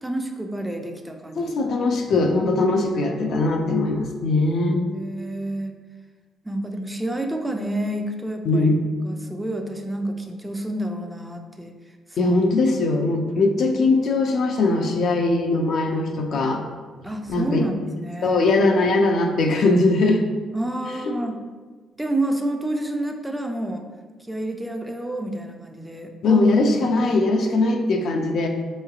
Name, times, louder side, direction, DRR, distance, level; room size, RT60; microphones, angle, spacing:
voice 1, 0.0-1.5 2.1-2.3 4.6-5.8 6.4-8.7 9.0-11.7 12.1-12.3 17.0-18.4 20.5-21.4 22.0-23.9 24.3-26.5 26.8-26.9, right 1 dB, 10° right, 4 dB, 0.4 m, -29 dB
voice 2, 1.4-4.8 8.5-8.9 12.2-16.6 17.3-17.6 18.2-20.2 26.2-28.5, left 2 dB, 65° left, 3 dB, 0.5 m, -20 dB
4.6 x 3.1 x 2.4 m, 1.4 s
cardioid pair, 90°, 0 cm